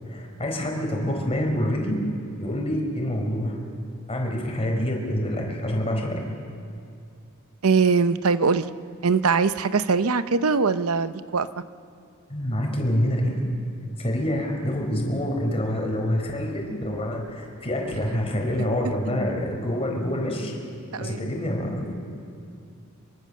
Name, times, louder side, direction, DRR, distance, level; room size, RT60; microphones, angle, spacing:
voice 1, 0.1-2.0 2.4-3.6 4.1-6.2 12.3-13.4 14.0-20.5 21.0-21.9, equal, 30° left, 1 dB, 4.3 m, -26 dB
voice 2, 7.6-8.7 9.0-11.6 17.9-18.0 20.9-21.3, right 4 dB, 80° right, 13 dB, 0.7 m, -22 dB
24.0 x 23.5 x 6.6 m, 2.4 s
head